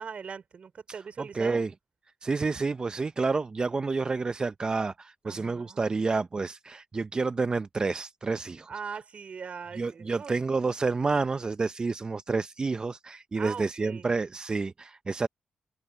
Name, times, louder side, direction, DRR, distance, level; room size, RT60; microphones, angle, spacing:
voice 1, 0.0-1.6 5.2-5.8 8.7-10.4 13.3-14.1, right 6 dB, 55° right, 4.8 m, -40 dB
voice 2, 1.2-1.7 2.2-8.7 9.8-15.3, right 4 dB, 35° right, 0.6 m, -29 dB
cardioid pair, 75°, 3 cm